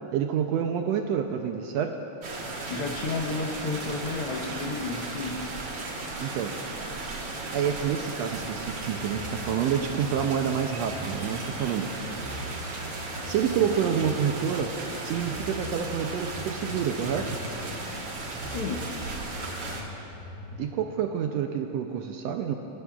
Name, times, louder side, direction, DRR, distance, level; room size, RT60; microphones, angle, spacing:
voice 1, 0.1-2.0 6.2-6.5 7.5-11.9 13.3-14.7 15.0-17.4 20.6-22.5, right 8 dB, 75° right, 5 dB, 1.6 m, -28 dB
sound 1, 2.2-19.8, right 2 dB, 50° right, 1.7 m, -36 dB
voice 2, 2.7-5.4 18.4-18.9, left 3 dB, 65° left, -1 dB, 1.6 m, -32 dB
sound 2, 8.3-20.8, equal, 35° right, 3.1 m, -41 dB
29.5 x 13.0 x 2.4 m, 3.0 s
omnidirectional pair, 3.3 m